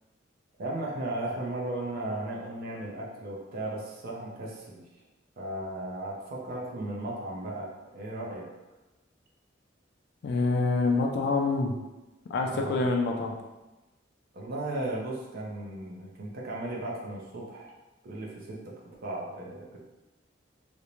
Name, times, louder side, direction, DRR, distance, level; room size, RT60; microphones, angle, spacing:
voice 1, 0.6-4.8 5.4-8.5 12.5-12.9 14.3-17.7 18.0-19.8, right 1 dB, 55° right, -3 dB, 0.5 m, -36 dB
voice 2, 10.2-11.8 12.3-13.3, left 3 dB, 60° left, 1 dB, 0.3 m, -26 dB
2.5 x 2.1 x 2.9 m, 1.1 s
head